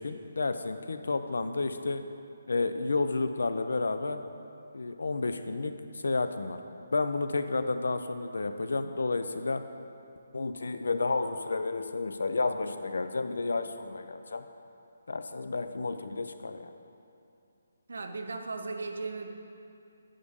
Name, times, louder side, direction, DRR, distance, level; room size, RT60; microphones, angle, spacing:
voice 1, 0.0-2.0 2.5-4.2 4.7-5.7 6.0-6.6 6.9-9.6 10.3-14.5 15.1-16.7, left 3 dB, 90° left, 9 dB, 0.7 m, -31 dB
voice 2, 17.9-19.3, right 3 dB, 70° right, 4 dB, 0.9 m, -36 dB
10.5 x 10.0 x 3.7 m, 2.6 s
hypercardioid pair, 180°, 0 cm